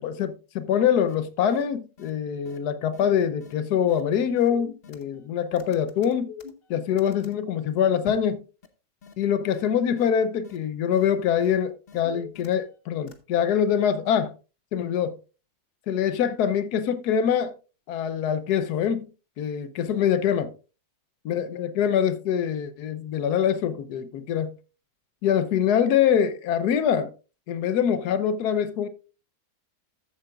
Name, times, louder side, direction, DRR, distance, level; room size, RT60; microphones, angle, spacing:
voice 1, 0.0-6.3 6.7-8.4 9.2-14.3 14.7-15.1 15.9-17.5 17.9-19.1 19.4-20.5 21.3-24.5 25.2-27.1 27.5-28.9, left 8 dB, 80° left, 1.3 m, -24 dB
sound 1, 1.1-1.2 1.5-1.6 2.0-2.1 2.5-2.6 2.9-3.1 3.4-3.5 3.9-4.0 4.4-5.3 5.6-7.3 8.1-8.4 8.6-8.7 9.0-9.1 9.5-9.6 10.0-10.1 10.4-10.6 10.9-11.0 11.4-11.5 11.9-12.8 13.1-13.2, left 7 dB, 45° left, 0.9 m, -44 dB
13.5 x 7.7 x 2.4 m
omnidirectional pair, 1.7 m